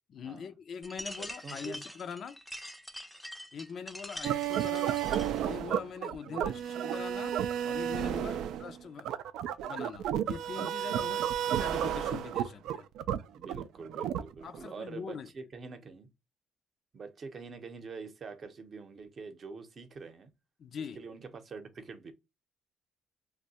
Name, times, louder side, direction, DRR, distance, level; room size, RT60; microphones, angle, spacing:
voice 1, 0.1-2.4 3.5-5.0 5.4-7.4 7.6-9.1 9.6-11.2 11.6-12.9 14.4-15.3 20.6-21.0, left 6 dB, 60° left, 0.4 m, -42 dB
sound 1, 0.8-5.4, equal, ahead, 0.5 m, -44 dB
voice 2, 1.1-1.8 4.7-4.8 6.3-6.7 8.3-8.5 11.0-11.4 13.3-16.1 16.9-20.3 20.9-22.1, right 4 dB, 45° right, 0.7 m, -46 dB
sound 2, 4.2-14.6, right 10 dB, 85° right, 0.3 m, -32 dB
2.6 x 2.2 x 4.1 m
cardioid pair, 95°, 0 cm